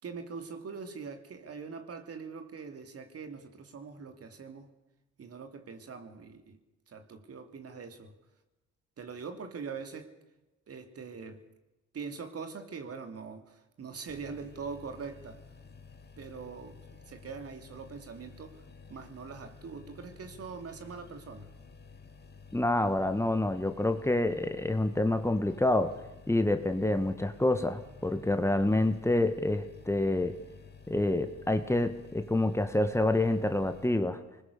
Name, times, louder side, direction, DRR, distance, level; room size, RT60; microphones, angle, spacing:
voice 1, 0.0-4.7 5.2-6.6 6.9-8.1 9.0-10.1 10.7-11.4 11.9-15.4 16.2-16.8 17.0-18.6 18.9-21.5, right 5 dB, 50° right, 3.1 m, -43 dB
sound 1, 14.1-33.9, left 5 dB, 35° left, 2.5 m, -52 dB
voice 2, 22.5-25.9 26.3-30.4 30.9-34.2, left 1 dB, 10° left, 1.7 m, -27 dB
24.5 x 20.5 x 6.9 m
cardioid pair, 90°, 30 cm